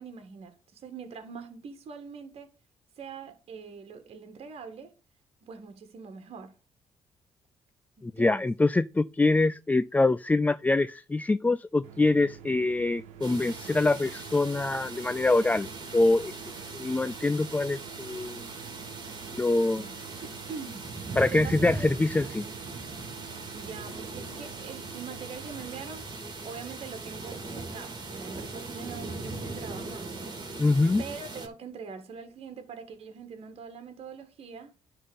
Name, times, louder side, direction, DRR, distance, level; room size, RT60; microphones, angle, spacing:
voice 1, 0.0-2.5 3.0-4.9 5.4-6.5 8.0-8.4 19.1-19.9 20.2-21.9 23.5-26.1 26.4-30.6 31.0-34.7, right 5 dB, 60° right, 1.7 m, -43 dB
voice 2, 8.0-16.3 16.7-18.5 19.3-19.8 21.2-22.5 30.6-31.0, left 2 dB, 15° left, 0.3 m, -25 dB
sound 1, 11.8-25.8, right 9 dB, 85° right, 1.2 m, -48 dB
sound 2, 13.2-31.5, right 3 dB, 40° right, 2.6 m, -40 dB
10.0 x 3.7 x 6.9 m
supercardioid pair, 65°, 12 cm